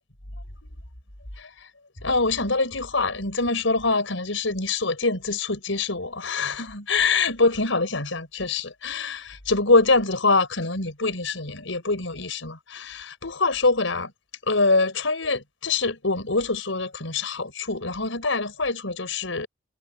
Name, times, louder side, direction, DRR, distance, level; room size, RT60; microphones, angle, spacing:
voice 1, 1.4-1.7 2.0-14.1 14.5-19.5, left 3 dB, 85° left, 5.4 m, -24 dB
head